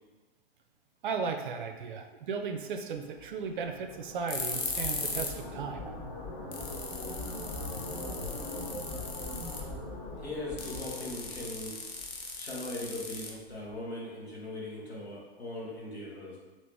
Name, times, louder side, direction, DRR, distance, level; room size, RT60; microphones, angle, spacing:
voice 1, 1.0-5.9, right 5 dB, 55° right, 6 dB, 0.5 m, -36 dB
sound 1, 3.0-12.2, left 2 dB, 50° left, 1.1 m, -41 dB
sound 2, 4.3-5.4 5.7-5.8 6.2-6.3 6.5-9.7 10.6-13.7, left 4 dB, 25° left, 0.3 m, -38 dB
voice 2, 10.2-11.7 12.4-16.4, left 1 dB, 90° left, -6 dB, 1.2 m, -39 dB
2.9 x 2.9 x 3.3 m, 1.2 s
figure-of-eight pair, 110°, 31 cm